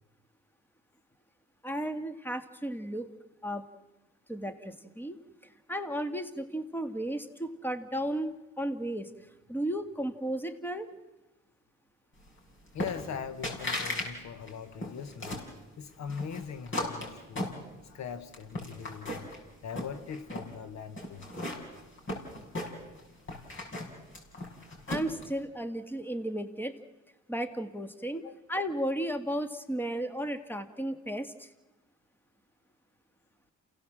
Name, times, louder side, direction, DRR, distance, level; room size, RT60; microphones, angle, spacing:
voice 1, 1.6-3.1 3.4-3.6 4.3-5.2 5.7-9.1 9.5-10.9 24.9-26.7 27.3-31.5, right 1 dB, 5° left, 1.9 m, -34 dB
voice 2, 12.7-15.5 15.8-17.6 17.9-19.3 19.6-21.3 28.2-28.4, left 7 dB, 65° left, 1.2 m, -41 dB
sound 1, 12.8-13.2 13.4-14.1 14.4-15.5 16.1-18.0 18.3-19.4 19.7-20.5 21.0-23.0 23.3-25.2, left 1 dB, 40° left, 6.2 m, -36 dB
28.5 x 17.0 x 7.4 m
cardioid pair, 90°, 30 cm